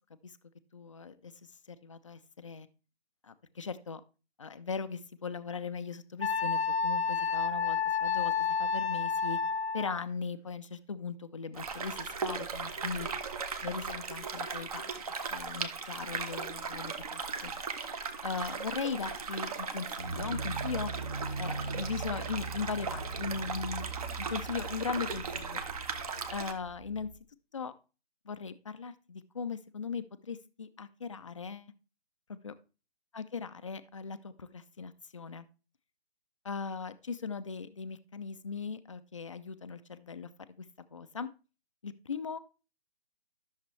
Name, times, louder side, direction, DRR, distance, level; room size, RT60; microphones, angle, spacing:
voice 1, 0.7-1.3 1.7-2.7 3.2-4.0 4.4-9.4 9.7-13.1 13.6-15.0 15.3-17.5 18.2-20.9 21.4-23.9 24.2-25.6 26.3-27.1 27.5-27.7 28.3-31.7 32.3-32.5 33.1-35.5 36.4-40.3 40.6-40.7 40.9-41.3 41.8-42.4, left 5 dB, 30° left, 11 dB, 0.5 m, -39 dB
Wind instrument woodwind instrument, 6.2-10.0, left 6 dB, 70° left, 0.8 m, -30 dB
sound 1, 11.5-26.5, right 5 dB, 35° right, 1.2 m, -38 dB
sound 2, 20.0-27.2, right 3 dB, 15° right, 0.8 m, -40 dB
13.0 x 6.6 x 3.2 m, 0.33 s
figure-of-eight pair, 155°, 33 cm